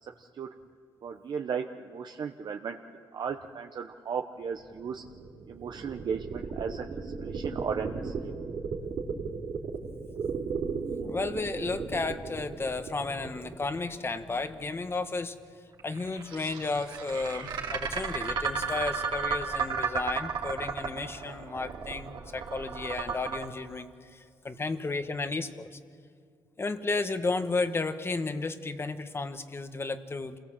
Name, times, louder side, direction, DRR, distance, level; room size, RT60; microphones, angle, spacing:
voice 1, 0.0-0.5 1.0-2.8 3.1-5.0 5.5-8.3, right 6 dB, 60° right, 4 dB, 1.0 m, -36 dB
sound 1, 4.5-14.5 15.8-23.4, right 5 dB, 75° right, 3.0 m, -34 dB
voice 2, 11.0-15.4 15.8-25.8 26.6-30.4, left 3 dB, 30° left, 9 dB, 1.4 m, -33 dB
27.0 x 18.0 x 7.6 m, 2.1 s
cardioid pair, 90°, 8 cm